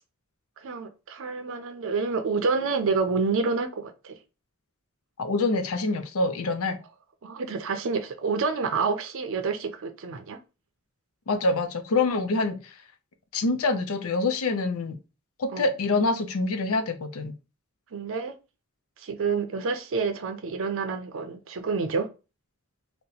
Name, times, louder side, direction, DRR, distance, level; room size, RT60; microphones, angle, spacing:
voice 1, 0.6-4.2 7.2-10.4 15.5-15.7 17.9-18.3 19.0-22.1, right 4 dB, 65° right, 0.5 m, -28 dB
voice 2, 5.2-6.8 11.3-12.8 13.3-15.0 15.4-17.3, left 3 dB, 90° left, 0.5 m, -26 dB
2.8 x 2.1 x 3.9 m
head